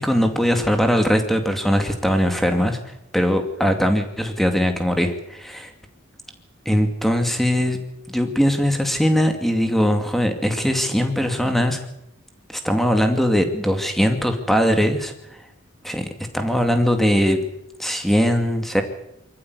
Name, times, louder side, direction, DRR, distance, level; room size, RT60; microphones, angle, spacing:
voice 1, 0.0-2.8 3.1-5.7 6.7-7.8 8.1-11.8 12.6-15.1 15.8-16.1 16.3-17.4 17.8-18.8, equal, ahead, 6 dB, 2.4 m, -20 dB
24.5 x 14.5 x 9.6 m, 0.82 s
head